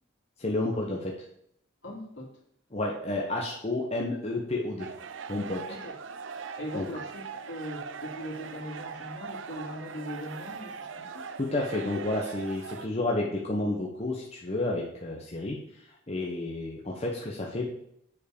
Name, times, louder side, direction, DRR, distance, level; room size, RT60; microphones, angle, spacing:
voice 1, 0.4-1.1 2.7-4.9 5.3-5.6 6.7-6.9 11.4-15.8 16.1-17.7, left 2 dB, 30° left, -2 dB, 1.1 m, -31 dB
voice 2, 1.8-2.4 5.7-5.9 6.6-11.2, equal, 60° left, -2 dB, 2.9 m, -40 dB
sound 1, 4.8-12.9, right 5 dB, 65° right, 0.6 m, -41 dB
8.4 x 4.7 x 6.6 m, 0.72 s
head